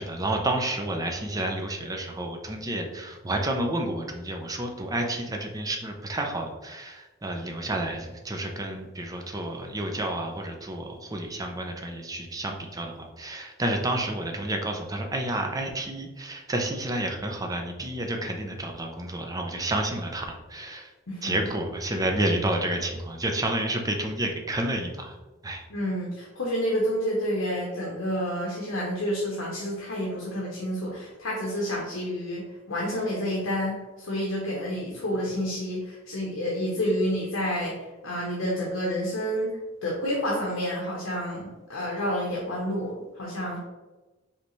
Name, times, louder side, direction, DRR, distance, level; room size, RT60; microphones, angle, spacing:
voice 1, 0.0-20.9 21.2-25.1 25.4-25.6, right 1 dB, 20° right, 2 dB, 0.6 m, -30 dB
voice 2, 21.1-21.4 25.7-39.5 39.8-43.6, equal, 75° left, -4 dB, 0.9 m, -29 dB
5.2 x 2.9 x 3.1 m, 1.2 s
head